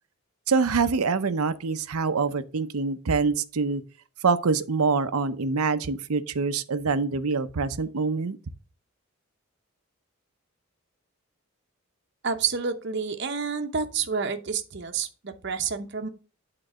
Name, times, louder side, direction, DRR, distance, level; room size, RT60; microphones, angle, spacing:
voice 1, 0.5-3.8 4.2-8.4, right 4 dB, 85° right, 0.7 m, -25 dB
voice 2, 12.2-16.1, right 5 dB, 50° right, 0.8 m, -29 dB
8.8 x 3.9 x 6.2 m
head